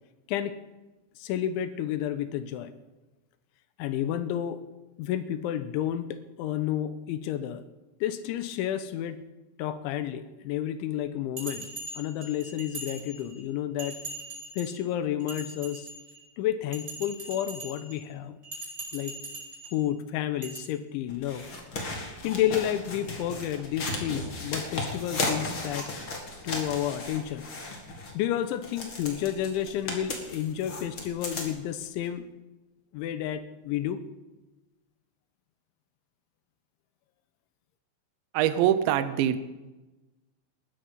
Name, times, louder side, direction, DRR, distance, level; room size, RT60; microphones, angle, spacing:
voice 1, 1.2-2.7 3.8-4.6 5.0-7.6 8.0-9.2 9.6-11.7 12.0-14.0 14.6-15.9 16.4-18.4 18.9-19.1 19.7-21.5 22.0-25.9 26.4-27.5 28.1-32.3 32.9-34.0, left 11 dB, 80° left, 11 dB, 3.0 m, -31 dB
Bell, 11.4-13.4 13.8-14.8 15.2-16.2 16.7-18.0 18.4-19.8 20.4-20.6, right 2 dB, 20° right, 8.2 m, -40 dB
sound 1, 21.1-28.1 28.6-31.7 32.1-32.2, left 2 dB, 40° left, 2.1 m, -35 dB
voice 2, 38.3-39.4, right 11 dB, 75° right, 11 dB, 2.9 m, -23 dB
20.0 x 13.0 x 5.3 m, 1.1 s
omnidirectional pair, 5.8 m